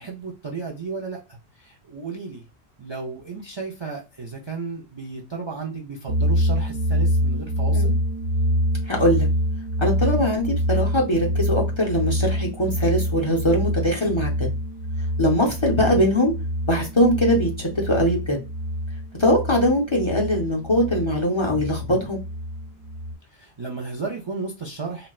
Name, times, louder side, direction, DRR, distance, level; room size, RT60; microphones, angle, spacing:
voice 1, 0.0-2.5 2.8-8.0 23.3-25.1, right 4 dB, 40° right, 1 dB, 0.4 m, -34 dB
sound 1, 6.1-23.1, equal, 90° right, 1.1 m, -26 dB
voice 2, 8.9-9.3 9.8-14.5 15.2-16.3 16.7-18.4 19.2-22.2, equal, 30° left, -1 dB, 0.6 m, -21 dB
4.1 x 2.1 x 2.3 m, 0.28 s
omnidirectional pair, 1.1 m